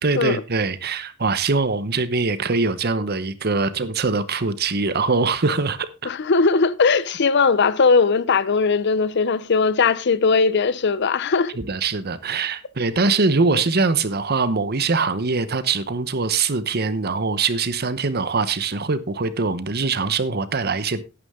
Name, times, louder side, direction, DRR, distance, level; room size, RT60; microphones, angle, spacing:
voice 1, 0.0-5.9 11.6-21.0, right 4 dB, 50° right, 0.9 m, -22 dB
voice 2, 6.0-11.6, left 4 dB, 55° left, 0.6 m, -19 dB
11.0 x 9.8 x 3.7 m
head